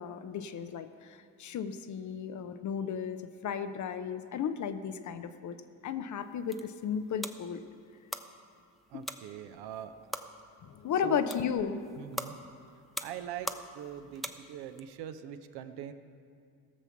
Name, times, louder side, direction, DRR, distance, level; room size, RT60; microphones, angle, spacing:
voice 1, 0.0-5.6 5.8-7.6 8.9-9.0 10.7-11.8, left 7 dB, 40° left, 10 dB, 0.7 m, -34 dB
sound 1, 6.2-14.8, equal, ahead, 0.5 m, -44 dB
voice 2, 8.9-9.9 11.0-11.3 12.0-12.4 13.0-15.9, right 9 dB, 55° right, 9 dB, 0.8 m, -42 dB
16.5 x 7.1 x 5.8 m, 2.3 s
figure-of-eight pair, 50°, 47 cm